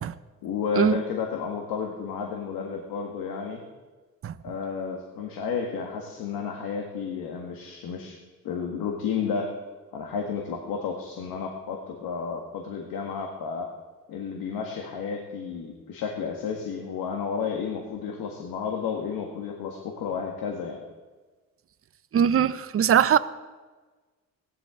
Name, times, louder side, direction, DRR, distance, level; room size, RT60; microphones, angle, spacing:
voice 1, 0.4-3.6 4.4-8.2 8.4-9.5 9.9-13.7 14.1-20.8, left 6 dB, 75° left, 1 dB, 1.8 m, -32 dB
voice 2, 22.1-23.2, right 9 dB, 40° right, 14 dB, 0.7 m, -21 dB
17.0 x 11.5 x 3.8 m, 1.3 s
supercardioid pair, 70°, 36 cm